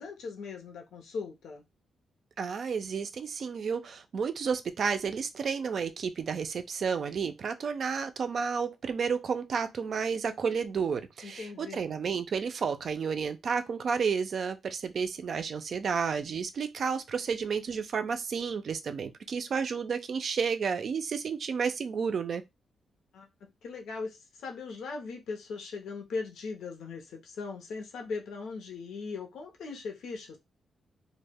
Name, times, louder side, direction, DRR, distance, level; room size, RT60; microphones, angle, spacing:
voice 1, 0.0-1.6 11.2-11.8 23.1-23.3 23.6-30.4, left 4 dB, 80° left, 0.6 m, -39 dB
voice 2, 2.4-22.4, right 6 dB, 55° right, 0.3 m, -31 dB
2.1 x 2.0 x 3.4 m
cardioid pair, 105°, 0 cm